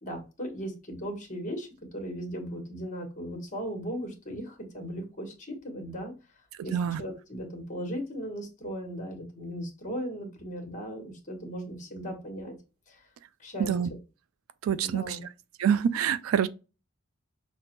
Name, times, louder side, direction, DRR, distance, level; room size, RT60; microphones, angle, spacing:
voice 1, 0.0-6.1 6.6-12.5 12.9-13.0 13.4-13.7 14.8-15.2, equal, 35° left, 1.2 m, -37 dB
voice 2, 14.6-15.2 15.6-16.5, right 8 dB, 70° right, 0.3 m, -26 dB
5.8 x 2.1 x 2.9 m
head